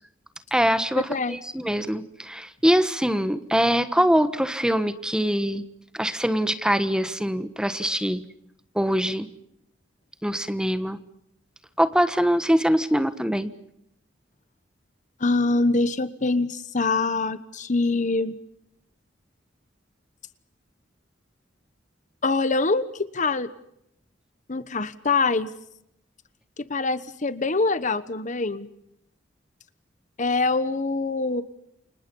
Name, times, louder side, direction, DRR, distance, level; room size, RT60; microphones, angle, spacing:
voice 1, 0.5-5.6 5.9-8.2 8.7-9.3 10.2-11.0 11.8-13.5, equal, 5° right, 11 dB, 1.3 m, -23 dB
voice 2, 15.2-18.4 22.2-23.5 24.5-25.5 26.6-28.7 30.2-31.4, left 3 dB, 40° left, 14 dB, 1.1 m, -24 dB
29.5 x 26.0 x 5.5 m, 0.76 s
head